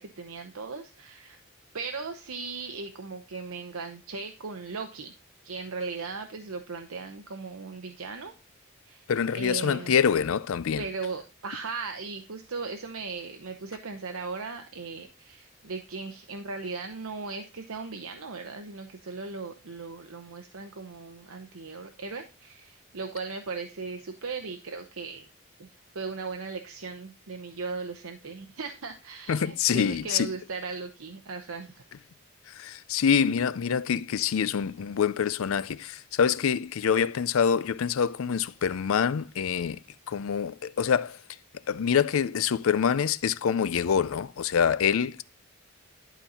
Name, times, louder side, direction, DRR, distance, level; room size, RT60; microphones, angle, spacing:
voice 1, 0.0-1.4 1.7-5.1 5.4-8.3 8.9-9.0 9.3-9.9 10.8-25.3 25.6-25.7 25.9-31.8, right 4 dB, 80° right, 0.8 m, -37 dB
voice 2, 9.1-10.8 29.3-30.3 32.6-39.8 40.1-41.2 41.7-45.2, left 7 dB, 75° left, 0.4 m, -25 dB
11.5 x 4.0 x 4.2 m
head